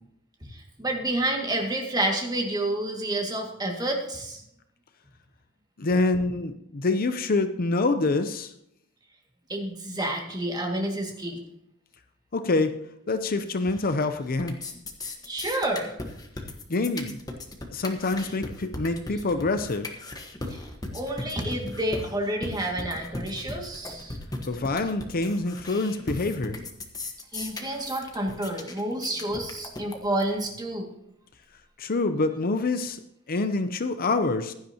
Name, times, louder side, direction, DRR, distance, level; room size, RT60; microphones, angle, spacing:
voice 1, 0.5-4.4 9.5-11.4 15.2-16.0 20.5-20.6 20.9-24.2 27.3-30.9, right 1 dB, 20° right, 1 dB, 2.0 m, -29 dB
voice 2, 5.8-8.5 12.3-14.6 16.7-17.2 17.7-19.9 24.5-26.6 31.8-33.0 33.3-34.5, left 3 dB, 45° left, 9 dB, 0.6 m, -26 dB
sound 1, 13.6-14.1 14.3-30.3, left 2 dB, 15° left, 1.3 m, -37 dB
16.0 x 11.5 x 2.9 m, 0.77 s
head